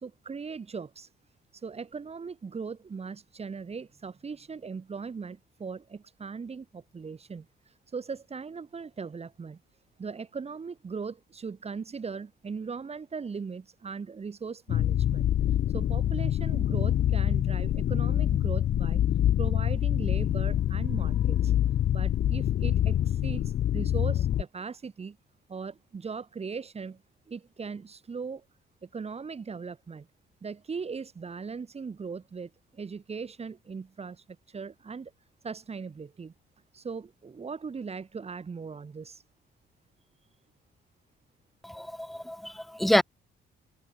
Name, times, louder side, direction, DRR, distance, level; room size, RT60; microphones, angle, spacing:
voice 1, 0.0-1.1 1.6-7.5 7.9-9.6 10.0-15.3 15.7-19.0 19.4-21.5 21.9-23.4 23.7-25.2 25.5-27.0 27.3-28.4 28.8-30.1 30.4-35.1 35.4-36.3 36.7-39.2, right 5 dB, 30° right, 1.4 m, -39 dB
sound 1, 14.7-24.4, left 11 dB, 60° left, 0.8 m, -26 dB
voice 2, 41.6-43.0, left 1 dB, ahead, 0.5 m, -27 dB
cardioid pair, 90°, 20 cm